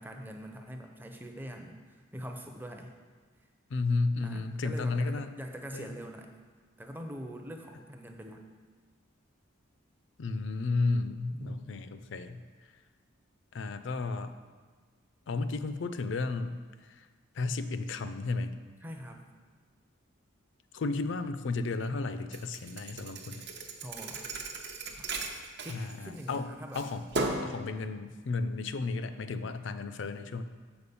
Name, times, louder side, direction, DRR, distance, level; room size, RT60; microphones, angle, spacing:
voice 1, 0.0-1.8 2.1-2.9 4.2-6.3 6.8-8.4 11.3-11.8 18.8-19.3 23.8-24.3 25.0-25.1 25.6-26.9, equal, 10° right, 3 dB, 0.5 m, -43 dB
voice 2, 3.7-5.3 5.7-6.0 10.2-12.4 13.5-14.3 15.3-16.6 16.9-17.1 17.4-18.6 20.7-23.4 25.7-27.1 27.4-30.4, left 3 dB, 65° left, 11 dB, 0.4 m, -33 dB
Thump thud, 22.3-26.4 26.7-27.6, right 2 dB, 55° right, 0.7 m, -36 dB
6.9 x 4.5 x 6.9 m, 1.5 s
head